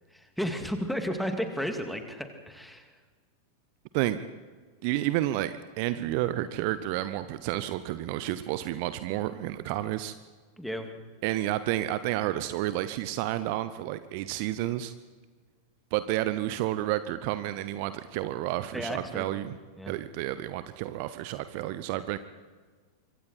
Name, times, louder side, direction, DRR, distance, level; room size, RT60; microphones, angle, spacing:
voice 1, 0.1-2.9 10.6-10.9 18.7-19.2 19.8-19.9, equal, ahead, 6 dB, 2.6 m, -33 dB
voice 2, 4.8-10.1 11.2-14.9 15.9-19.6 19.9-22.2, right 14 dB, 45° right, 13 dB, 0.9 m, -30 dB
25.0 x 25.0 x 4.5 m, 1.4 s
figure-of-eight pair, 90°, 0 cm